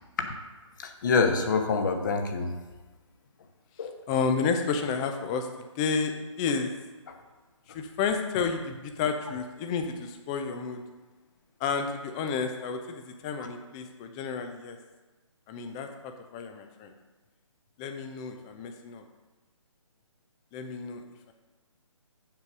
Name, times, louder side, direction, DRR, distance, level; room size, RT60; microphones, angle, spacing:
voice 1, 0.8-2.5 3.8-3.9 7.1-7.2, left 4 dB, 35° left, 5 dB, 1.0 m, -26 dB
voice 2, 4.1-5.5 5.8-6.7 7.7-10.8 11.6-14.8 15.5-16.9 17.8-19.0 20.5-21.3, left 5 dB, 10° left, 5 dB, 0.4 m, -31 dB
7.3 x 5.3 x 6.2 m, 1.2 s
figure-of-eight pair, 140°, 17 cm